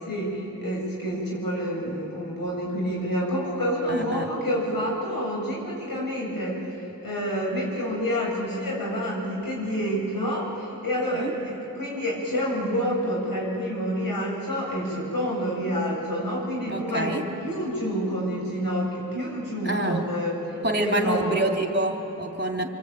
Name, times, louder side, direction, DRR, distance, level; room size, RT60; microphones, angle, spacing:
voice 1, 0.1-6.6 7.0-20.3 20.7-21.4, equal, 85° left, -3 dB, 7.8 m, -28 dB
voice 2, 3.9-4.3 11.0-11.3 16.7-17.3 19.6-20.1 20.6-22.6, right 1 dB, 30° right, 1 dB, 3.0 m, -27 dB
26.5 x 24.0 x 9.0 m, 3.0 s
wide cardioid pair, 65°, 34 cm